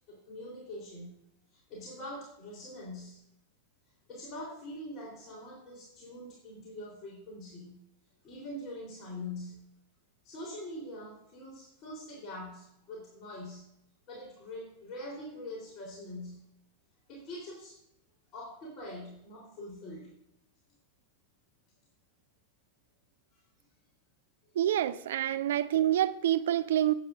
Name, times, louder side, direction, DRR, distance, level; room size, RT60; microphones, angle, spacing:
voice 1, 0.1-1.1 1.5-3.2 4.1-7.8 8.2-9.6 10.2-13.7 14.1-16.4 17.1-17.8 18.3-20.1, left 1 dB, 35° left, 3.7 m, -43 dB
voice 2, 24.5-26.9, right 12 dB, 60° right, 0.6 m, -27 dB
17.0 x 8.9 x 2.6 m
figure-of-eight pair, 90°, 0 cm